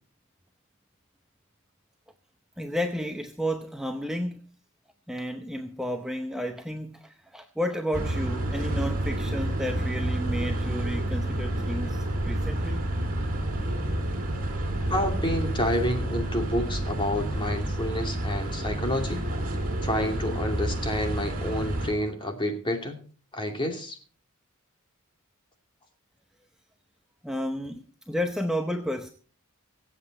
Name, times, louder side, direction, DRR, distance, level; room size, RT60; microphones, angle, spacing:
voice 1, 2.6-4.4 5.1-12.8 27.2-29.1, equal, 5° right, 4 dB, 0.8 m, -32 dB
sound 1, 7.9-21.9, right 1 dB, 40° right, 4.2 m, -29 dB
voice 2, 14.9-19.3 19.8-23.0 23.3-24.0, left 1 dB, 20° left, 3 dB, 2.7 m, -29 dB
24.0 x 8.3 x 4.2 m, 0.39 s
head